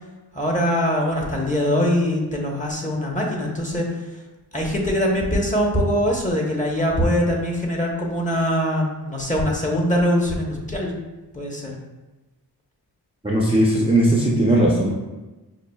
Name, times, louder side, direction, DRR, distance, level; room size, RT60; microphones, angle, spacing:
voice 1, 0.3-3.9 4.5-10.9 11.3-11.7, equal, 20° left, -1 dB, 1.0 m, -22 dB
voice 2, 13.2-14.9, right 1 dB, 15° right, -4 dB, 0.7 m, -18 dB
5.6 x 2.4 x 2.3 m, 1.1 s
cardioid pair, 50°, 41 cm